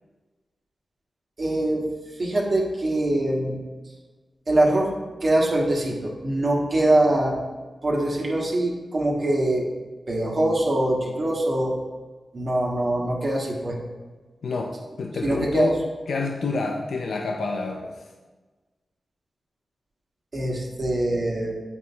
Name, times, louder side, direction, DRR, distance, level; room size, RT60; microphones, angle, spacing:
voice 1, 1.4-1.8 2.2-3.6 4.5-4.9 5.2-7.3 7.8-9.7 10.1-11.8 12.3-13.8 15.2-15.7 20.3-21.5, right 1 dB, 55° right, -3 dB, 1.5 m, -23 dB
voice 2, 14.4-15.8 16.1-18.1, left 3 dB, 80° left, 1 dB, 0.5 m, -28 dB
8.6 x 4.2 x 3.5 m, 1.3 s
cardioid pair, 50°, 0 cm